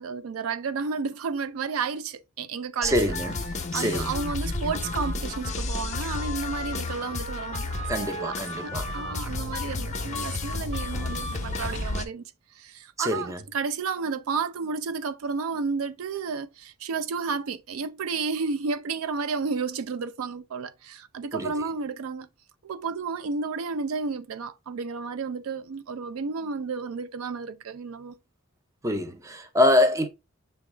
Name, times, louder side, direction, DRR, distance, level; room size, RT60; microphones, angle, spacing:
voice 1, 0.0-3.0 3.7-8.4 8.6-12.2 12.6-22.3 22.6-28.2, right 4 dB, 85° right, 0.4 m, -32 dB
sound 1, 2.8-12.1, left 3 dB, 35° left, 0.5 m, -31 dB
voice 2, 2.8-3.4 3.7-4.1 7.9-8.9 13.0-13.4 21.3-21.5 28.8-30.1, left 1 dB, 15° right, 0.5 m, -24 dB
6.2 x 2.3 x 3.1 m
head